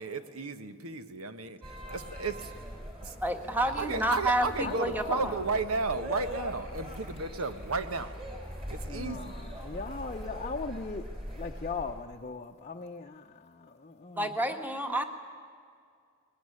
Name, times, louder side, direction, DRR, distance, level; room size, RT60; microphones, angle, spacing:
voice 1, 0.0-2.5 3.0-3.2 3.6-8.1 8.7-9.5, right 3 dB, 75° right, 10 dB, 1.2 m, -34 dB
sound 1, 1.6-12.0, equal, 25° right, 4.1 m, -41 dB
voice 2, 3.2-5.4 14.2-15.0, right 1 dB, 10° right, 6 dB, 1.5 m, -29 dB
voice 3, 4.6-5.0 8.9-9.3 9.6-11.0 11.4-13.2 13.8-14.2, left 4 dB, 35° left, 1 dB, 0.7 m, -38 dB
20.5 x 19.5 x 9.8 m, 2.2 s
head